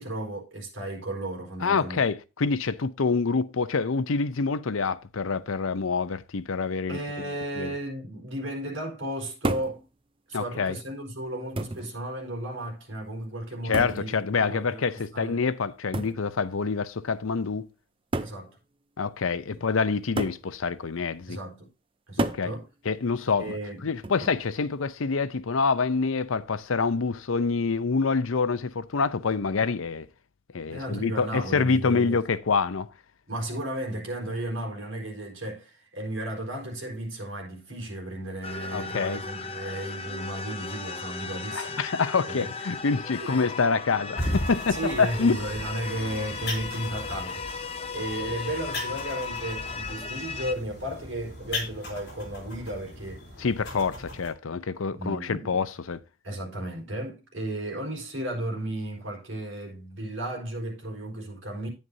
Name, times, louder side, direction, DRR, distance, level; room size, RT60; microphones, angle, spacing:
voice 1, 0.0-2.0 6.9-9.8 10.3-15.4 18.2-18.6 19.5-19.6 21.3-21.7 22.1-22.6 23.4-23.9 30.7-32.2 33.3-41.8 42.3-42.5 43.2-43.4 44.7-53.3 54.9-55.6 56.2-61.7, right 1 dB, 70° right, 4.5 m, -34 dB
voice 2, 1.6-7.0 7.6-7.7 10.3-10.8 13.6-17.7 19.0-21.4 22.2-22.5 22.8-23.6 23.8-30.1 30.5-32.9 38.7-39.2 41.5-45.4 53.4-56.0, left 4 dB, 85° left, 0.6 m, -26 dB
sound 1, 9.4-9.8 10.8-10.9 11.6-11.9 13.7-14.1 15.9-16.2 17.3-17.4 18.1-18.4 20.2-20.5 22.2-22.5 24.0-24.4, right 2 dB, 25° right, 0.5 m, -30 dB
sound 2, 38.4-50.5, left 4 dB, 30° left, 0.7 m, -36 dB
sound 3, 44.2-54.3, left 1 dB, 55° left, 3.4 m, -37 dB
10.5 x 9.3 x 2.7 m
head